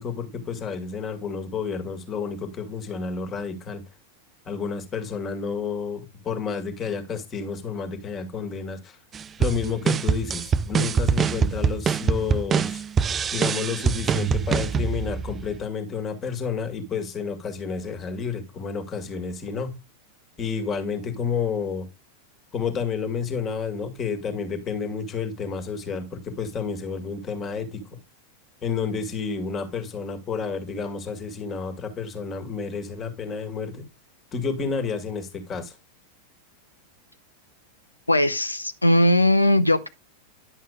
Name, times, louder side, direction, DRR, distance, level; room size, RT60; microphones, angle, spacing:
voice 1, 0.0-3.8 4.5-9.0 9.4-12.8 13.3-19.8 20.4-21.9 22.5-27.8 28.6-33.8 34.3-35.8, left 5 dB, 25° left, 1.9 m, -30 dB
sound 1, 9.1-15.6, right 6 dB, 20° right, 0.4 m, -24 dB
voice 2, 38.1-39.9, left 1 dB, 85° left, 0.7 m, -19 dB
11.0 x 7.3 x 2.3 m
figure-of-eight pair, 90°, 0 cm